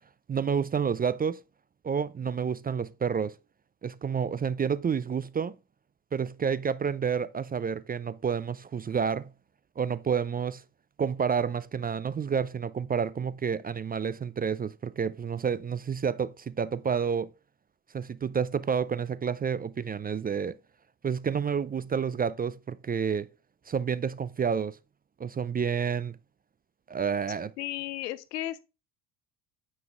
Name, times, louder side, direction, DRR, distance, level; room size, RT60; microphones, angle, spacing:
voice 1, 0.3-1.4 1.8-3.4 3.8-5.6 6.1-9.3 9.8-10.6 11.0-17.3 17.9-20.6 21.0-23.3 23.7-24.8 25.2-26.2 26.9-27.5, right 6 dB, 20° right, 0.4 m, -29 dB
voice 2, 27.6-28.6, left 14 dB, 90° left, 0.9 m, -34 dB
9.4 x 5.5 x 3.7 m
hypercardioid pair, 70°, 47 cm